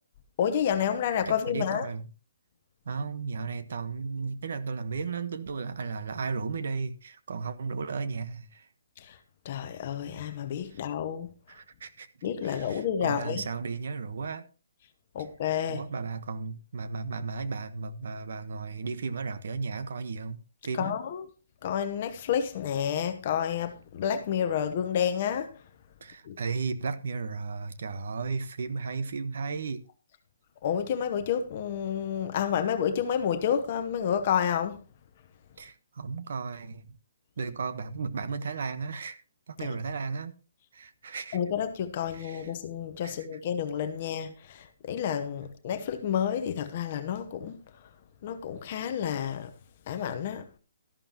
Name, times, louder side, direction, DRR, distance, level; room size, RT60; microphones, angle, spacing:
voice 1, 0.4-1.9 9.0-9.2 9.4-11.3 12.2-13.5 15.1-15.8 20.7-21.3 21.6-25.5 26.2-26.4 30.6-34.8 39.6-39.7 41.3-47.6 48.2-49.5 49.9-50.5, left 8 dB, 30° left, 0.9 m, -30 dB
voice 2, 1.3-2.1 2.8-8.7 10.7-10.8 11.5-12.1 12.4-14.5 15.7-20.4 20.6-21.0 26.0-29.8 35.6-36.8 37.4-39.2 39.5-40.3 40.7-41.4 42.1-42.5 43.0-43.3, right 4 dB, 55° right, 1.2 m, -34 dB
13.0 x 11.0 x 3.0 m
hypercardioid pair, 175°, 0 cm